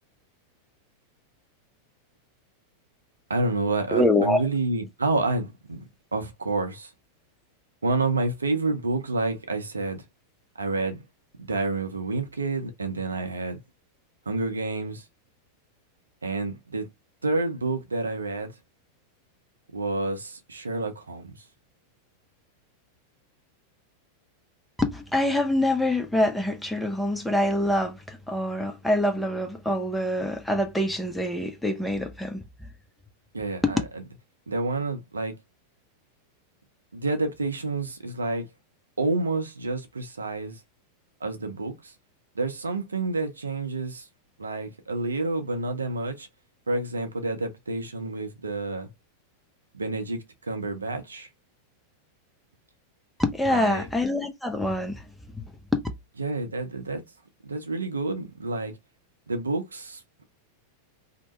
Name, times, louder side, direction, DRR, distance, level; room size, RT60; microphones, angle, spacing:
voice 1, 3.3-5.8 6.1-6.9 7.8-10.0 10.6-11.1 11.4-13.6 14.3-15.0 16.2-16.9 17.2-18.5 19.7-21.4 33.3-33.8 34.5-35.3 36.9-38.5 39.0-40.6 41.2-41.9 42.3-44.1 44.4-46.3 46.7-48.9 49.7-51.3 53.5-53.9 56.2-57.0 57.4-58.7 59.3-60.0, right 3 dB, 75° right, 0.6 m, -29 dB
voice 2, 3.9-4.4 24.8-32.7 33.6-33.8 53.2-55.1 55.4-55.9, left 1 dB, 5° left, 0.6 m, -25 dB
2.8 x 2.1 x 2.9 m
figure-of-eight pair, 90°, 0 cm